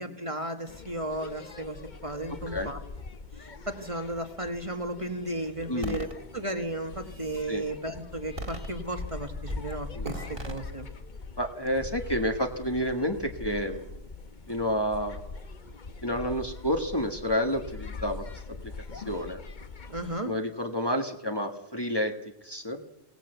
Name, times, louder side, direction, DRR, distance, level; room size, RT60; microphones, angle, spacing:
voice 1, 0.0-2.8 3.4-6.1 6.3-10.9 19.9-20.3, right 1 dB, 25° right, 6 dB, 1.7 m, -34 dB
sound 1, 0.7-20.2, left 4 dB, 45° left, 1.1 m, -42 dB
sound 2, 5.8-6.1 6.8-7.5 8.4-9.1 9.5-9.7 10.0-10.6, right 2 dB, 50° right, 2.4 m, -38 dB
voice 2, 11.4-13.8 14.5-15.2 16.0-18.2 18.6-19.4 20.2-22.1 22.4-22.8, equal, 20° left, 4 dB, 1.5 m, -29 dB
23.5 x 18.0 x 8.1 m, 0.89 s
omnidirectional pair, 1.2 m